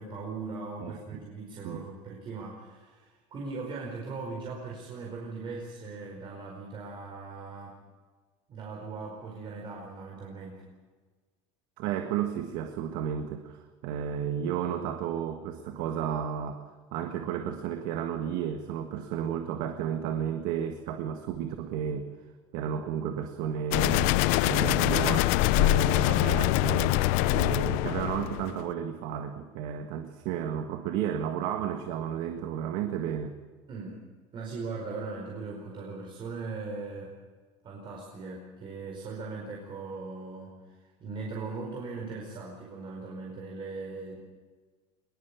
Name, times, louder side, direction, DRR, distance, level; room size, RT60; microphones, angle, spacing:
voice 1, 0.0-7.8 8.5-10.6 33.7-34.0 34.3-37.1 37.6-44.1, right 4 dB, 35° right, -1 dB, 4.8 m, -39 dB
voice 2, 0.8-1.2 1.6-1.8 11.8-16.6 16.9-22.1 22.5-24.2 24.4-25.2 25.6-27.0 27.3-33.4, right 8 dB, 65° right, 5 dB, 1.7 m, -32 dB
sound 1, 23.7-28.6, left 17 dB, 65° left, 0.7 m, -24 dB
21.5 x 21.0 x 7.1 m, 1.4 s
supercardioid pair, 135°, 14 cm